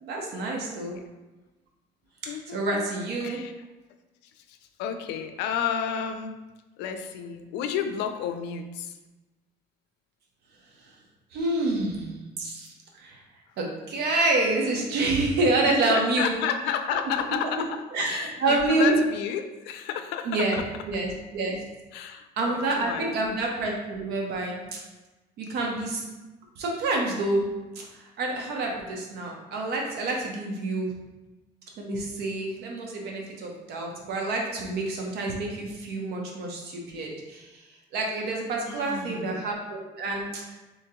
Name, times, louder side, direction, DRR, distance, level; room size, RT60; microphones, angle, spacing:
voice 1, 0.0-1.0 2.2-3.4 11.3-12.7 12.9-13.2 13.6-16.3 17.9-19.0 20.3-21.6 22.4-24.8 25.4-26.0 26.6-30.9 31.8-37.6 37.9-40.6, right 2 dB, 75° right, 0 dB, 0.8 m, -28 dB
voice 2, 2.3-3.5 4.4-6.4 6.8-9.0 15.6-20.6 21.9-23.2 38.6-39.5, left 8 dB, 90° left, 7 dB, 0.4 m, -32 dB
3.0 x 2.8 x 3.7 m, 1.1 s
cardioid pair, 110°, 17 cm